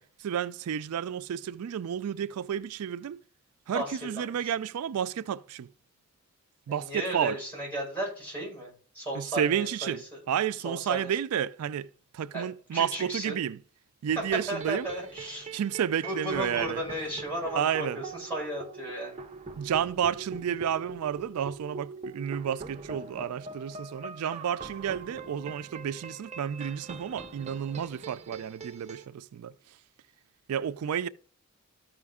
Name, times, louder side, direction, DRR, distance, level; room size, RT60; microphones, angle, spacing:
voice 1, 0.2-3.2 3.7-5.7 6.7-7.4 9.1-13.6 14.0-14.9 15.5-16.8 17.5-18.0 19.6-29.5 30.5-31.1, right 9 dB, 85° right, 0.3 m, -31 dB
voice 2, 6.7-10.2 10.6-11.1 12.3-12.5 12.7-13.4 14.5-15.5 16.0-19.2, right 1 dB, 10° left, 5.2 m, -35 dB
sound 1, 14.1-29.1, right 4 dB, 30° right, 0.6 m, -43 dB
13.5 x 5.0 x 3.6 m
head